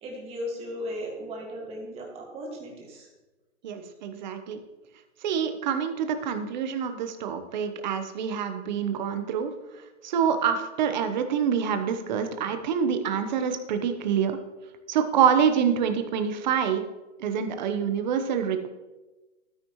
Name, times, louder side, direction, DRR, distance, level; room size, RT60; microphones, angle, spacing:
voice 1, 0.0-3.1, equal, 15° right, -1 dB, 1.9 m, -36 dB
voice 2, 3.6-4.6 5.2-14.4 14.9-16.8 17.2-18.7, right 7 dB, 35° right, 7 dB, 1.0 m, -26 dB
12.5 x 9.5 x 3.1 m, 1.1 s
hypercardioid pair, 155°, 37 cm